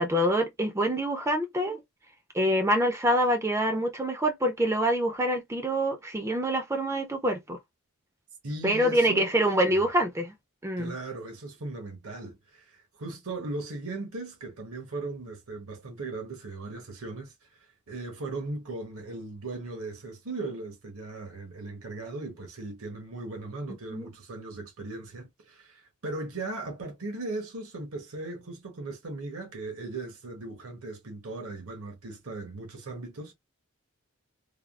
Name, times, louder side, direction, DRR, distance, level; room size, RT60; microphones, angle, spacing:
voice 1, 0.0-1.8 2.3-7.6 8.6-10.3 10.6-10.9 23.9-24.1, equal, 10° right, 0.3 m, -26 dB
voice 2, 8.4-9.4 9.7-9.9 10.8-17.3 17.9-33.3, right 2 dB, 70° right, 1.0 m, -38 dB
3.4 x 2.2 x 2.3 m
head